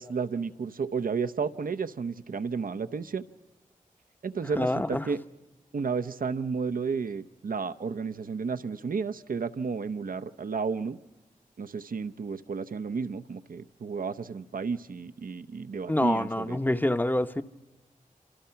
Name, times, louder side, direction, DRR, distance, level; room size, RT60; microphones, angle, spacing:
voice 1, 0.0-3.2 4.2-5.2 5.7-11.0 11.6-16.6, right 5 dB, 80° right, 0.8 m, -32 dB
voice 2, 4.6-5.1 15.9-17.4, left 1 dB, 15° left, 0.8 m, -26 dB
28.5 x 26.0 x 5.8 m
wide cardioid pair, 65°, 15 cm